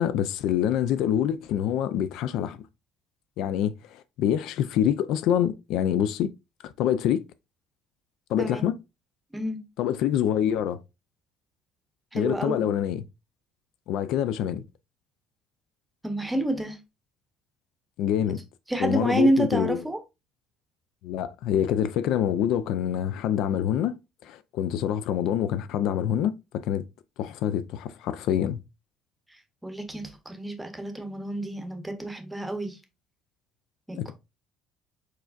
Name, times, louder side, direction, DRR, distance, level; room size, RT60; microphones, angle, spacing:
voice 1, 0.0-2.6 3.4-6.3 6.6-7.2 8.3-8.7 9.8-10.8 12.1-13.0 13.9-14.6 18.0-18.4 18.8-19.8 21.0-23.9 24.2-26.8 27.2-28.6 34.0-34.1, left 10 dB, 60° left, 0.3 m, -26 dB
voice 2, 12.1-12.7 16.0-16.8 18.7-20.0 29.3-32.8 33.9-34.1, right 1 dB, 5° right, 0.8 m, -28 dB
4.7 x 4.4 x 2.4 m
cardioid pair, 165°, 0 cm